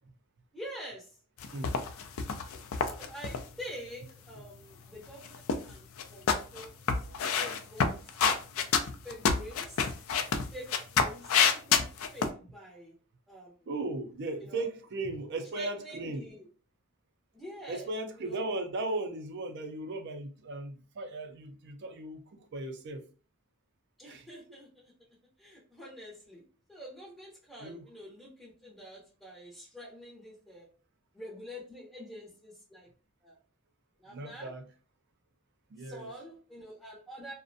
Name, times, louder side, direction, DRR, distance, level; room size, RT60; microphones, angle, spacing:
voice 1, 0.5-1.1 2.8-8.0 9.0-9.9 10.5-11.8 12.1-12.9 13.3-13.5 14.4-14.7 15.5-16.5 17.3-17.9 18.2-18.5 24.0-24.9 25.4-26.4 26.7-30.7 31.1-32.9 33.2-33.3 34.0-34.5 35.8-37.3, equal, ahead, -5 dB, 0.6 m, -46 dB
sound 1, 1.4-3.4 5.1-5.7 6.0-12.3, left 6 dB, 70° left, 0.3 m, -28 dB
voice 2, 13.7-16.3 17.7-22.2 22.5-23.0 24.0-24.3 27.6-27.9 34.1-34.7 35.7-36.1, right 2 dB, 55° right, 7 dB, 0.4 m, -37 dB
2.4 x 2.1 x 2.5 m, 0.39 s
head